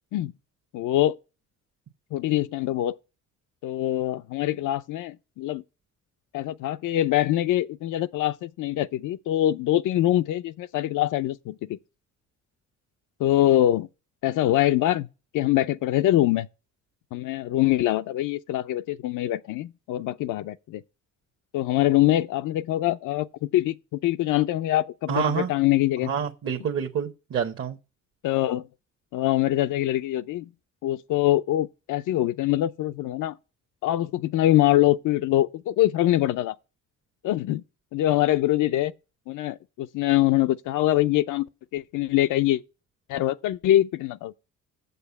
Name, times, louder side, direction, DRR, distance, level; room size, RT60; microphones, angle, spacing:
voice 1, 0.7-1.2 2.1-3.0 3.6-5.6 6.3-11.8 13.2-13.9 14.2-15.1 15.3-16.5 17.1-20.8 21.5-23.3 23.5-26.1 28.2-28.7 29.1-30.5 30.8-33.4 33.8-36.6 37.2-37.6 37.9-38.9 39.3-41.5 41.7-42.6 43.1-44.3, left 14 dB, 80° left, 0.5 m, -24 dB
voice 2, 25.1-25.5 26.1-27.8, right 7 dB, 45° right, 0.9 m, -27 dB
7.5 x 6.8 x 6.9 m
cardioid pair, 145°, 30 cm